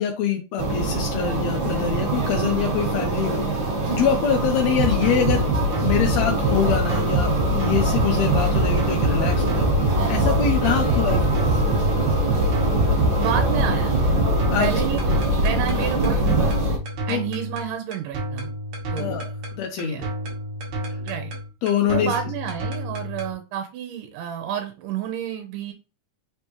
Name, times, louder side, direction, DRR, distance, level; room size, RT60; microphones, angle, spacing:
voice 1, 0.0-5.5 5.8-11.4 14.5-14.7 17.1-17.2 19.0-19.2 19.5-20.1 21.6-22.1, left 8 dB, 85° left, 3 dB, 1.5 m, -25 dB
sound 1, 0.6-16.8, right 2 dB, 45° right, 1.8 m, -23 dB
sound 2, 4.8-23.3, equal, 65° right, 2.0 m, -26 dB
voice 2, 13.2-14.0 14.6-16.5 17.1-18.5 18.9-19.3 19.8-20.1 21.0-21.3 21.8-25.7, right 9 dB, 85° right, 4 dB, 2.3 m, -30 dB
5.2 x 3.4 x 2.9 m, 0.30 s
omnidirectional pair, 3.7 m